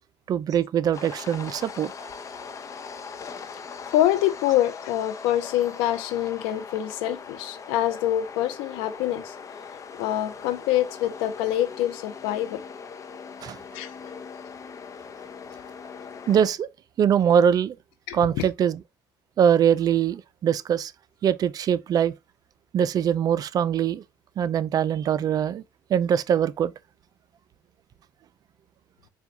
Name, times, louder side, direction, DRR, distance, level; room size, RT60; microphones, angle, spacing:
voice 1, 0.3-1.9 13.4-13.6 16.3-16.7 17.0-17.7 18.1-18.8 19.4-20.9 21.2-22.1 22.7-24.0 24.4-25.6 25.9-26.7, right 8 dB, 50° right, 0.4 m, -22 dB
sound 1, 0.9-16.5, left 6 dB, 40° left, 0.7 m, -40 dB
voice 2, 3.9-9.3 10.0-12.6 13.7-13.9 18.1-18.5, left 12 dB, 90° left, 0.6 m, -25 dB
4.4 x 2.3 x 3.8 m
supercardioid pair, 85°, 8 cm